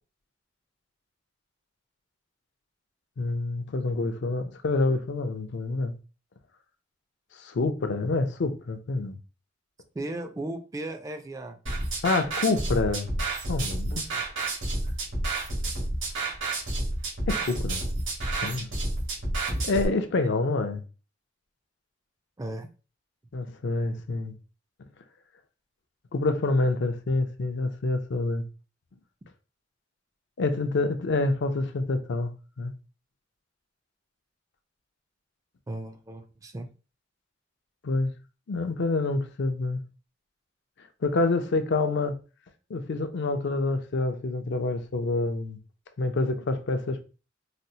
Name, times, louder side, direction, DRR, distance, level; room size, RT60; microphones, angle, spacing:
voice 1, 3.2-5.9 7.4-9.2 12.0-13.1 13.5-14.0 17.3-17.8 18.3-18.7 19.6-20.8 23.3-24.3 26.1-28.5 30.4-32.7 37.8-38.1 38.5-39.8 41.0-42.2 42.7-45.6 46.0-47.0, left 3 dB, 65° left, 0.5 m, -27 dB
voice 2, 9.9-11.6 13.9-14.2 22.4-22.7 35.7-36.7, right 2 dB, 20° right, 0.3 m, -36 dB
sound 1, 11.7-19.9, right 2 dB, 85° right, 1.4 m, -30 dB
4.1 x 2.0 x 2.7 m
head